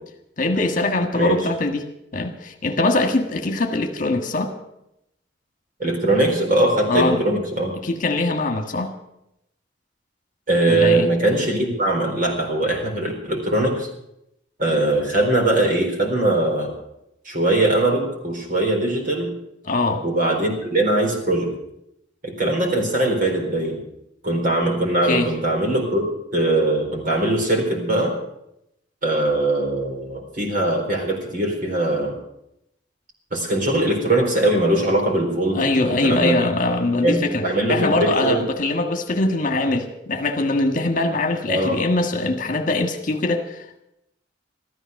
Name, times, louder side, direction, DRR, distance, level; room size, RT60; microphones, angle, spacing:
voice 1, 0.4-1.8 2.1-4.5 6.9-7.2 7.8-8.9 10.7-11.1 19.6-20.0 25.0-25.3 35.5-43.8, left 2 dB, 45° left, 6 dB, 1.6 m, -22 dB
voice 2, 5.8-7.7 10.5-13.9 14.6-16.7 17.2-19.3 20.0-21.5 22.2-23.8 24.2-26.1 26.3-28.1 29.0-32.1 33.3-36.4 37.0-37.2 37.4-38.4 41.5-41.8, right 1 dB, 50° right, 1 dB, 4.2 m, -21 dB
14.0 x 13.5 x 6.5 m, 0.81 s
head